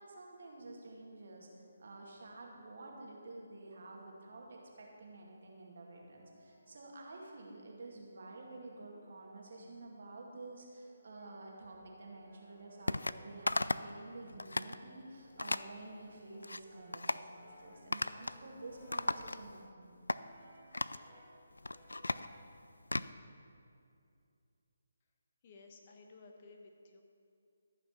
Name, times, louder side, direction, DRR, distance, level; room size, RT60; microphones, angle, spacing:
voice 1, 0.0-1.5 1.8-19.9, right 2 dB, 60° right, -1 dB, 2.2 m, -50 dB
Brass instrument, 5.4-7.4 8.1-10.2 10.8-19.5 20.1-21.4 21.7-22.6, equal, ahead, 2.6 m, -62 dB
sound 1, 12.9-13.2 13.5-13.9 14.3-14.8 15.4-15.7 16.2-16.6 16.9-17.3 17.9-18.4 18.7-19.7 20.1-20.2 20.7-21.0 21.5-23.1, left 2 dB, 85° left, 0.3 m, -36 dB
voice 2, 25.4-27.0, left 3 dB, 35° left, 3 dB, 1.1 m, -56 dB
14.0 x 5.9 x 5.8 m, 2.5 s
figure-of-eight pair, 150°, 0 cm